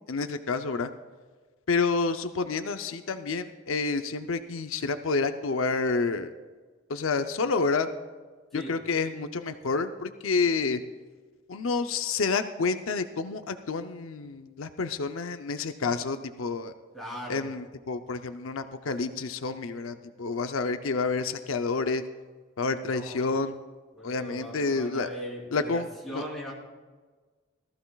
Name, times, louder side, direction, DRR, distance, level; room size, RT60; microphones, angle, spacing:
voice 1, 0.1-0.9 1.7-6.3 6.9-7.9 8.5-10.8 11.5-16.7 17.3-22.0 22.6-23.5 24.0-25.1 25.5-26.2, left 4 dB, 85° left, 8 dB, 0.6 m, -29 dB
voice 2, 16.9-17.4 22.8-23.4 24.0-26.5, equal, ahead, -5 dB, 3.4 m, -40 dB
19.0 x 14.5 x 2.4 m, 1.4 s
head